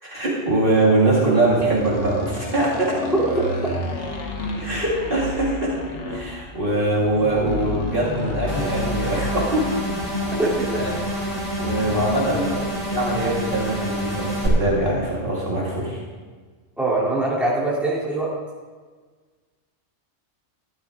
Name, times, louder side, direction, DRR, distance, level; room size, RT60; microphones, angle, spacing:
voice 1, 0.0-3.0 4.6-5.8 6.1-9.8 10.7-10.9 11.6-12.5 12.9-16.0, right 2 dB, 50° right, -5 dB, 2.6 m, -22 dB
sound 1, 1.4-12.1, left 2 dB, 90° left, 1.7 m, -32 dB
voice 2, 3.1-3.4 10.4-10.8 12.4-12.7 16.8-18.3, right 2 dB, ahead, -7 dB, 3.2 m, -23 dB
sound 2, 8.5-14.5, equal, 65° right, 3.9 m, -28 dB
13.0 x 12.5 x 3.7 m, 1.4 s
omnidirectional pair, 1.2 m